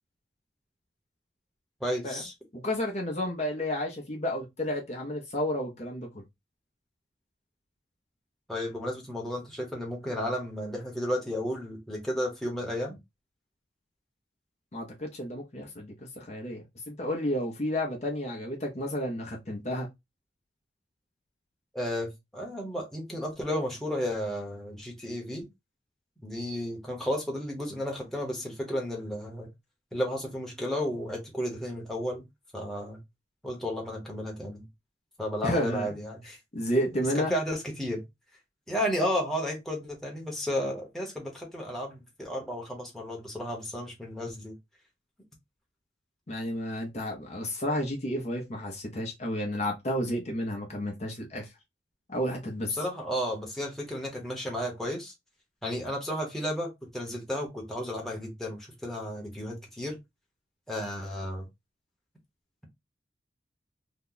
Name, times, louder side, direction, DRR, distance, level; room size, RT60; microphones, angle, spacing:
voice 1, 1.8-2.3 8.5-13.0 21.7-25.5 26.2-29.5 29.9-32.2 32.5-33.0 33.4-34.7 35.2-36.4 37.1-38.0 38.7-44.6 52.7-55.1 55.6-60.0 60.7-61.5, equal, ahead, 0.9 m, -33 dB
voice 2, 2.5-6.2 14.7-19.9 35.4-35.9 36.5-37.3 46.3-51.5 52.1-52.8, equal, 35° left, 0.7 m, -31 dB
2.9 x 2.2 x 3.8 m
head